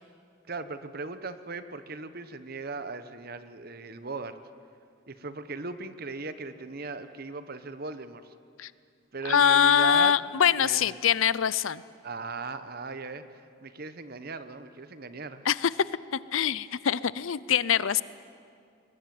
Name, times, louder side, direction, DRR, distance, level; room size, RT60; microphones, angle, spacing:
voice 1, 0.5-4.4 5.1-8.3 9.1-10.1 10.6-10.9 12.0-15.4, right 3 dB, 45° right, 11 dB, 1.1 m, -38 dB
voice 2, 9.2-11.8 15.4-15.7 16.1-18.0, left 8 dB, 75° left, 18 dB, 0.6 m, -23 dB
22.0 x 21.0 x 9.4 m, 2.4 s
head